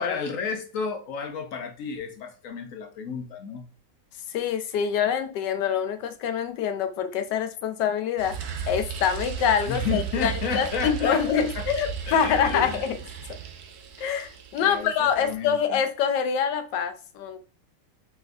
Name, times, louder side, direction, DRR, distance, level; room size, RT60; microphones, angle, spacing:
voice 1, 0.0-3.7 9.7-11.6 12.1-12.9 14.6-15.8, left 6 dB, 60° left, 5 dB, 1.0 m, -32 dB
voice 2, 4.3-12.9 14.0-17.4, left 7 dB, 75° left, 9 dB, 1.2 m, -25 dB
sound 1, 8.2-15.3, right 7 dB, 70° right, 1.1 m, -35 dB
4.7 x 4.3 x 2.5 m, 0.38 s
omnidirectional pair, 1.9 m